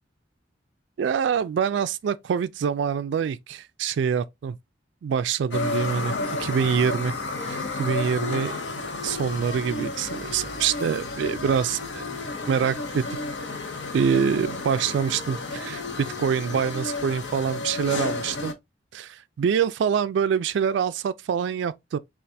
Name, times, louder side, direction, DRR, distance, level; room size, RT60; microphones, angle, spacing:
voice 1, 1.0-4.6 5.0-7.1 7.4-8.6 9.0-12.0 12.5-13.2 13.9-18.5 18.9-22.0, right 7 dB, 75° right, 0.3 m, -25 dB
sound 1, 5.5-18.5, left 3 dB, 70° left, 0.9 m, -32 dB
4.1 x 2.4 x 3.3 m
head